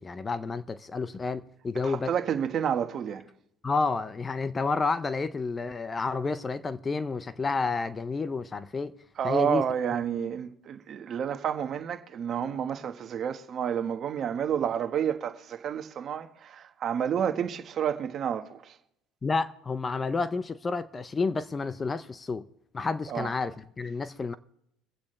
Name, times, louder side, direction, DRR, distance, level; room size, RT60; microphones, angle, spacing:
voice 1, 0.0-2.1 3.6-8.9 9.2-9.7 19.2-22.5 22.7-24.3, left 4 dB, 25° left, 0.6 m, -30 dB
voice 2, 1.7-3.2 9.2-18.8 23.1-23.3, right 8 dB, 45° right, 1.3 m, -30 dB
24.5 x 8.4 x 3.3 m
supercardioid pair, 100°, 0 cm